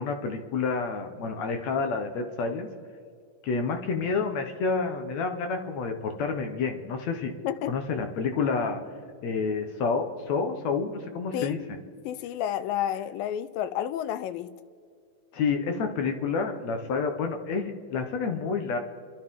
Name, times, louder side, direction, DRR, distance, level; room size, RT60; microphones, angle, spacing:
voice 1, 0.0-2.7 3.4-7.3 7.7-8.8 9.2-11.8 15.3-18.8, left 4 dB, 65° left, 2.0 m, -29 dB
voice 2, 12.1-14.5, left 10 dB, 90° left, 2.4 m, -30 dB
29.5 x 12.5 x 3.7 m
omnidirectional pair, 3.9 m